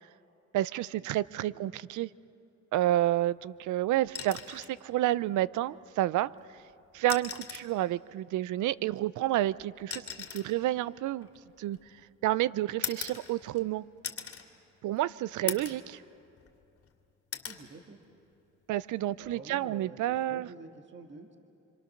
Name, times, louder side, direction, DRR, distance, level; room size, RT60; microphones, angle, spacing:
voice 1, 0.5-2.1 2.7-6.3 6.9-10.0 10.3-11.3 11.6-11.8 12.2-13.9 14.8-15.8 18.7-20.5, right 14 dB, 75° right, 20 dB, 0.5 m, -29 dB
sound 1, 4.1-4.8 6.2-6.3 7.0-7.8 8.9-12.0 12.8-13.7 14.0-14.5 14.9-15.0 15.5-15.9 16.3-16.9 17.3-17.6 19.1-19.3, left 7 dB, 50° left, 2.6 m, -40 dB
voice 2, 15.4-15.8 17.4-18.0 19.2-21.4, right 4 dB, 40° right, 4 dB, 1.7 m, -48 dB
26.5 x 26.0 x 6.5 m, 2.7 s
cardioid pair, 90°, 30 cm